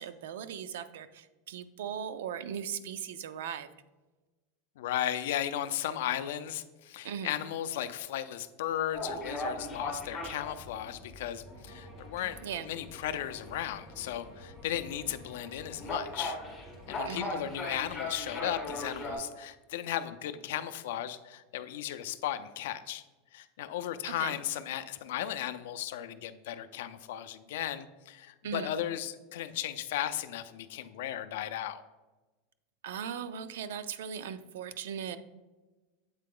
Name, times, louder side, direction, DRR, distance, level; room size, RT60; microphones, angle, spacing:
voice 1, 0.0-3.7 7.0-7.3 12.4-12.7 17.1-17.5 24.0-24.3 28.4-28.7 32.8-35.2, right 8 dB, 85° right, 12 dB, 0.4 m, -38 dB
voice 2, 4.8-16.4 16.9-23.0 23.3-31.8, left 11 dB, 70° left, 10 dB, 0.4 m, -36 dB
sound 1, 8.9-19.2, left 2 dB, 5° left, 2.1 m, -40 dB
sound 2, 11.6-17.4, equal, 25° right, 1.0 m, -56 dB
8.0 x 3.8 x 3.7 m, 1.2 s
supercardioid pair, 175°, 0 cm